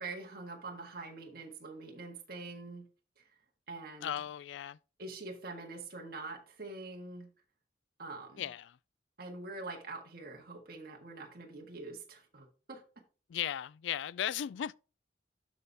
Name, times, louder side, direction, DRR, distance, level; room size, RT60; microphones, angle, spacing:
voice 1, 0.0-2.9 3.2-3.3 3.7-4.1 5.0-7.3 8.0-8.4 9.2-12.8, right 3 dB, 50° right, 1.6 m, -45 dB
voice 2, 4.0-4.8 8.4-8.8 13.3-14.8, left 10 dB, 75° left, 0.3 m, -36 dB
12.0 x 4.2 x 3.4 m
head